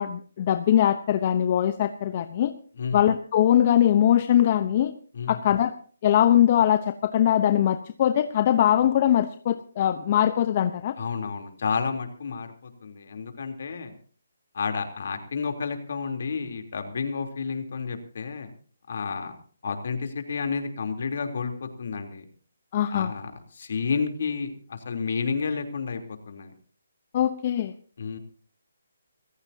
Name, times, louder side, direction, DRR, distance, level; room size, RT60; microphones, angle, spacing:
voice 1, 0.0-2.5 2.9-4.9 5.3-5.7 6.0-10.9 22.7-23.1 27.1-27.7, left 11 dB, 30° left, 10 dB, 0.9 m, -21 dB
voice 2, 11.0-13.9 14.5-18.5 18.9-19.3 19.6-22.2 22.9-26.5 28.0-28.2, left 5 dB, 55° left, 6 dB, 3.4 m, -31 dB
25.5 x 15.0 x 2.8 m, 0.43 s
hypercardioid pair, 165°, 0 cm